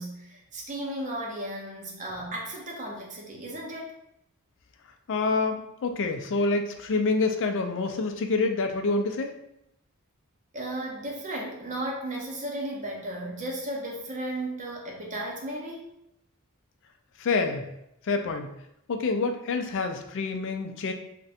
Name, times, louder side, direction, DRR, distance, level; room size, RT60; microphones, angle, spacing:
voice 1, 0.0-3.9 10.5-16.0 18.2-18.3, right 1 dB, 35° right, -1 dB, 0.7 m, -35 dB
voice 2, 5.1-9.3 17.2-17.7 18.0-18.5 18.9-20.9, left 3 dB, 60° left, 6 dB, 0.4 m, -27 dB
2.5 x 2.1 x 4.0 m, 0.80 s
head